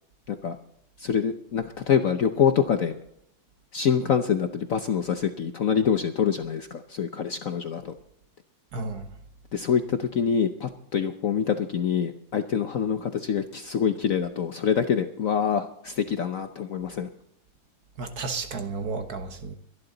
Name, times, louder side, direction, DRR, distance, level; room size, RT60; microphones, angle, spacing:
voice 1, 1.0-2.9 3.7-7.9 9.5-17.1, left 7 dB, 60° left, 0.9 m, -25 dB
voice 2, 8.7-9.1 18.0-19.5, right 4 dB, 55° right, 1.6 m, -32 dB
23.5 x 11.0 x 4.0 m
omnidirectional pair, 2.1 m